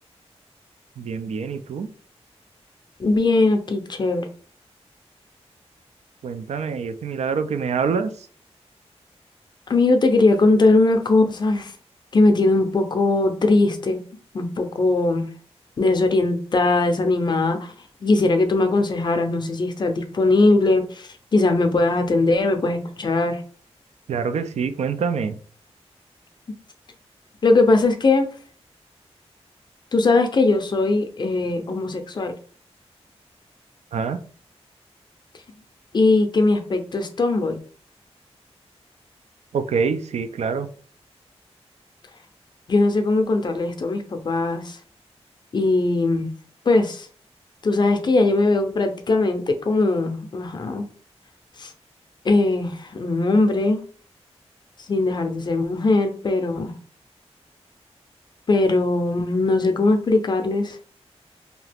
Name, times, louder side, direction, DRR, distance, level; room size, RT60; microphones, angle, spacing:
voice 1, 1.0-1.9 6.2-8.1 24.1-25.4 33.9-34.2 39.5-40.7, right 5 dB, 90° right, 10 dB, 0.4 m, -25 dB
voice 2, 3.0-4.3 9.7-11.7 12.1-14.0 14.3-15.3 15.8-17.7 18.0-23.4 27.4-28.3 29.9-32.3 35.9-37.6 42.7-44.8 45.5-46.3 46.7-47.1 47.6-50.9 51.6-51.7 52.2-53.8 54.9-56.7 58.5-60.8, left 2 dB, 45° left, 5 dB, 0.5 m, -20 dB
2.8 x 2.4 x 3.4 m, 0.43 s
wide cardioid pair, 150°, 11 cm